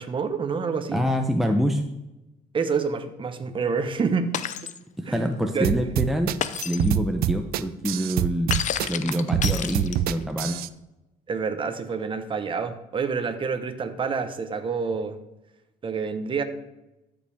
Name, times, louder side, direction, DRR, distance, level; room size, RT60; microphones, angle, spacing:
voice 1, 0.0-1.0 2.5-4.4 5.0-5.7 11.3-15.2 15.8-16.4, right 5 dB, 30° right, 8 dB, 0.9 m, -28 dB
voice 2, 0.9-1.9 5.0-6.4 6.7-8.5 8.9-10.6, equal, ahead, 4 dB, 0.7 m, -25 dB
Shatter, 4.3-4.8 6.4-6.9 8.5-10.2, left 9 dB, 45° left, 0.5 m, -30 dB
sound 1, 5.6-10.7, right 11 dB, 65° right, 0.4 m, -25 dB
13.0 x 5.3 x 3.4 m, 0.94 s
cardioid pair, 110°, 17 cm